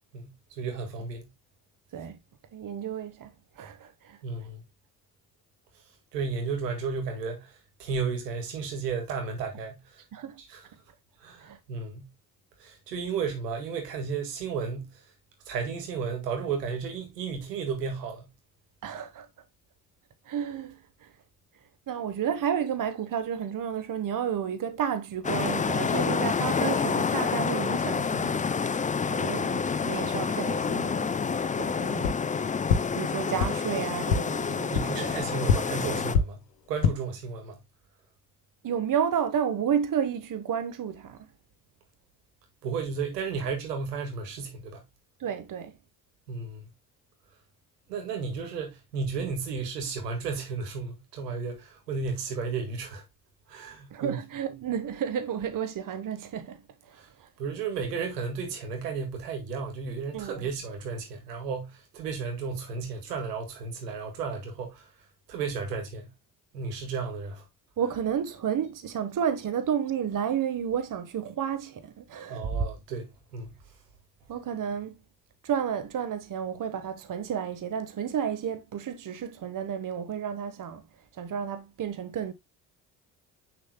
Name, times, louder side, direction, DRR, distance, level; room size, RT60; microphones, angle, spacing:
voice 1, 0.1-1.3 4.2-4.6 6.1-7.5 7.8-9.8 10.5-10.6 11.2-12.1 12.6-14.9 15.5-18.3 34.7-36.4 36.7-37.6 42.6-44.8 46.3-46.6 47.9-53.0 53.5-54.2 57.4-64.9 65.3-66.1 66.5-67.4 72.3-73.5, right 5 dB, 85° right, 2.0 m, -33 dB
voice 2, 2.5-4.2 10.1-10.4 11.4-11.6 18.8-19.3 20.2-21.1 21.9-28.5 29.1-31.1 31.6-32.1 32.9-35.2 38.6-41.3 45.2-45.8 53.9-57.3 60.1-60.5 67.8-72.6 74.3-74.9 75.4-80.8 81.1-82.3, right 8 dB, 40° right, 1.2 m, -31 dB
sound 1, 25.2-36.2, left 5 dB, 15° left, 0.5 m, -28 dB
sound 2, 32.0-32.1 32.7-32.8 33.4-33.5 34.1-34.2 34.7-34.8 35.4-35.5 36.1-36.2 36.7-36.9, left 6 dB, 85° left, 1.0 m, -22 dB
7.5 x 6.5 x 2.2 m
hypercardioid pair, 50°, 47 cm